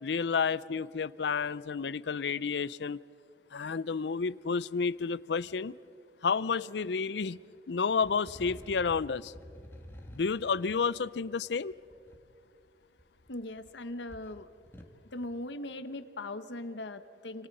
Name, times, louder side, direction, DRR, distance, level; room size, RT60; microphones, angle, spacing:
voice 1, 0.0-3.0 3.5-5.7 6.2-7.4 7.7-9.3 10.1-11.8, left 5 dB, 75° left, 19 dB, 0.5 m, -30 dB
sound 1, 8.0-12.2 13.0-13.7 14.0-15.0, equal, 15° left, 1.7 m, -50 dB
voice 2, 13.3-14.5 15.0-17.5, left 1 dB, 90° left, 11 dB, 1.2 m, -39 dB
29.0 x 27.0 x 5.5 m, 2.5 s
head